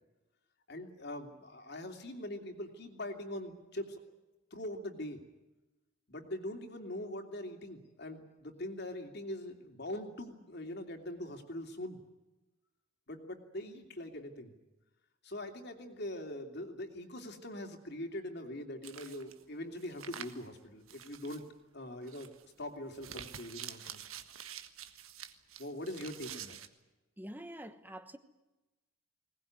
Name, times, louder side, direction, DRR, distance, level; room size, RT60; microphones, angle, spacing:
voice 1, 0.7-4.0 4.5-5.2 6.1-12.0 13.1-14.5 15.2-21.4 21.7-24.0 25.6-26.6, left 1 dB, 55° left, 2.9 m, -42 dB
sound 1, 18.8-19.4 19.8-20.5 20.9-21.4 22.0-22.4 22.9-26.7, right 9 dB, 90° right, 1.5 m, -47 dB
voice 2, 27.2-28.2, right 1 dB, 10° right, 1.1 m, -46 dB
21.0 x 19.0 x 9.5 m
head